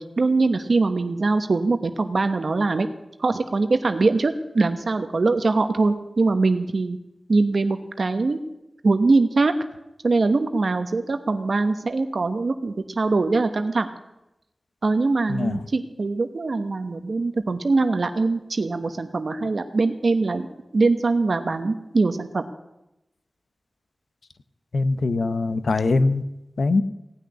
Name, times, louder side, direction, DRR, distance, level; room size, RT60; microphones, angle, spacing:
voice 1, 0.0-2.9 3.2-7.0 7.3-8.4 8.8-9.5 10.0-13.9 14.8-20.5 20.7-22.4, right 3 dB, 65° right, 9 dB, 1.0 m, -22 dB
voice 2, 15.3-15.6 24.7-26.2 26.6-26.8, left 3 dB, 80° left, 12 dB, 0.8 m, -22 dB
17.5 x 6.6 x 9.7 m, 0.92 s
wide cardioid pair, 80°, 0 cm